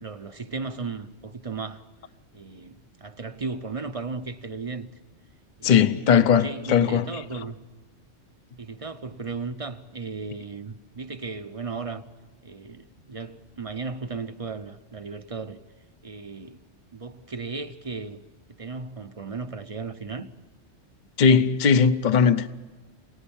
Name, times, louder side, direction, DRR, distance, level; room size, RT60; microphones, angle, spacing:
voice 1, 0.0-1.9 2.3-4.9 5.6-6.1 6.4-7.6 8.6-12.1 12.4-15.6 16.0-16.6 16.9-18.2 18.6-20.3, right 4 dB, 35° right, 0.8 m, -35 dB
voice 2, 5.6-7.2 21.2-22.6, left 6 dB, 45° left, 0.9 m, -19 dB
27.5 x 19.0 x 7.2 m
omnidirectional pair, 1.2 m